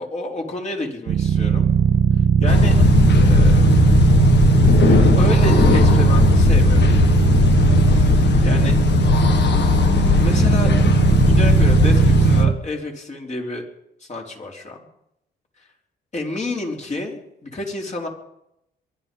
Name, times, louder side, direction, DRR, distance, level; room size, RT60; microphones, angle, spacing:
voice 1, 0.0-1.7 2.4-2.8 3.2-4.2 5.1-6.9 7.9-8.1 8.4-8.8 10.1-10.7 11.2-13.6 14.0-14.8 16.1-18.1, left 2 dB, 35° left, 0 dB, 4.1 m, -29 dB
sound 1, 1.1-12.5, right 7 dB, 60° right, 1.1 m, -17 dB
sound 2, 2.5-12.4, left 7 dB, 60° left, 1.6 m, -18 dB
23.0 x 11.0 x 5.5 m, 0.80 s
cardioid pair, 90°, 20 cm